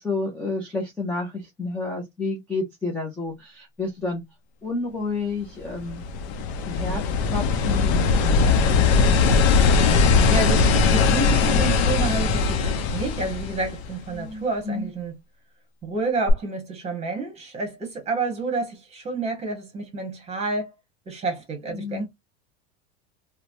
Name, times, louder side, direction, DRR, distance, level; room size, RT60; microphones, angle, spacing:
voice 1, 0.0-4.2 4.6-6.0 6.7-7.0 7.3-9.9 14.1-14.9 21.7-22.0, left 3 dB, 5° left, 0.5 m, -31 dB
sound 1, 5.7-14.1 16.3-16.4, left 4 dB, 70° left, 0.6 m, -20 dB
voice 2, 10.0-15.1 15.8-20.7 21.1-22.1, right 3 dB, 20° right, 1.1 m, -29 dB
3.0 x 2.1 x 2.5 m
supercardioid pair, 155°, 34 cm